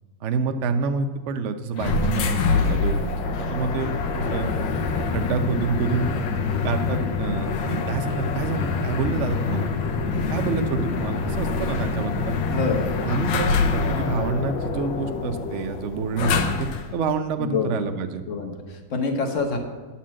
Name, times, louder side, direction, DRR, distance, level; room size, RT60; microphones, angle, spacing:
voice 1, 0.2-4.5 5.1-6.3 6.6-9.7 10.3-12.4 13.0-18.2, right 4 dB, 80° right, 7 dB, 0.6 m, -28 dB
sound 1, 1.8-16.9, left 4 dB, 90° left, 1.5 m, -25 dB
voice 2, 12.5-12.9 17.4-17.8 18.3-19.6, left 4 dB, 45° left, 4 dB, 1.2 m, -26 dB
10.0 x 4.3 x 7.4 m, 1.4 s
omnidirectional pair, 2.0 m